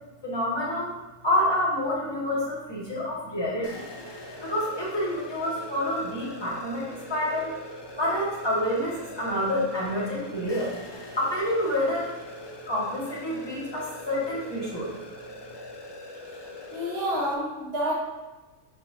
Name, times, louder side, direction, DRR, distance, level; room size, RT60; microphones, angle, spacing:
voice 1, 0.2-0.9 1.2-3.8 4.4-7.5 8.0-12.1 12.7-14.9, left 1 dB, 20° left, -7 dB, 2.1 m, -28 dB
sound 1, 3.6-17.3, left 1 dB, 35° left, 0.4 m, -42 dB
voice 2, 16.7-18.1, equal, 45° right, -5 dB, 1.6 m, -29 dB
6.7 x 6.6 x 2.8 m, 1.2 s
omnidirectional pair, 1.5 m